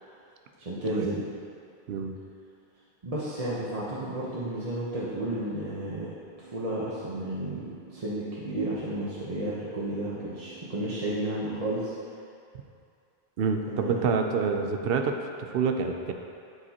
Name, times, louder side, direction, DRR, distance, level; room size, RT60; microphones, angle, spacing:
voice 1, 0.6-1.2 3.0-6.1 6.4-11.9 13.7-14.1, right 1 dB, 40° right, -8 dB, 1.0 m, -32 dB
Keyboard (musical), 6.2-12.1, right 5 dB, 10° left, 1.2 m, -53 dB
voice 2, 13.4-16.1, right 5 dB, 70° right, 5 dB, 0.8 m, -27 dB
12.0 x 5.1 x 2.9 m, 2.4 s
omnidirectional pair, 1.0 m